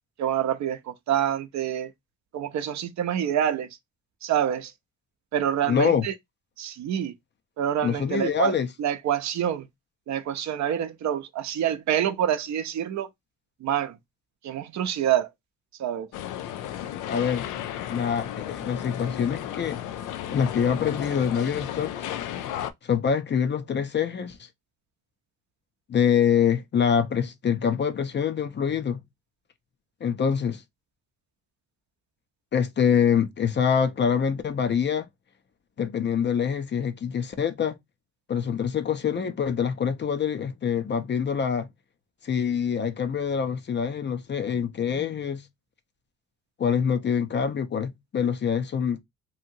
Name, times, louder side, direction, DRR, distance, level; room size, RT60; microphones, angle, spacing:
voice 1, 0.2-1.9 2.3-3.7 4.2-4.7 5.3-6.1 6.6-7.1 7.6-9.7 10.1-13.1 13.6-14.0 14.4-15.3 15.8-16.1, right 10 dB, 65° right, 0.6 m, -27 dB
voice 2, 5.7-6.0 7.8-8.7 17.1-17.5 17.9-19.8 20.3-22.1 22.8-24.5 25.9-29.0 30.0-30.6 32.5-35.1 35.8-37.8 38.3-41.7 42.2-45.4 46.6-49.0, left 7 dB, 35° left, 0.5 m, -25 dB
sound 1, 16.1-22.7, left 11 dB, 85° left, 0.5 m, -34 dB
2.8 x 2.7 x 2.6 m
cardioid pair, 90°, 30 cm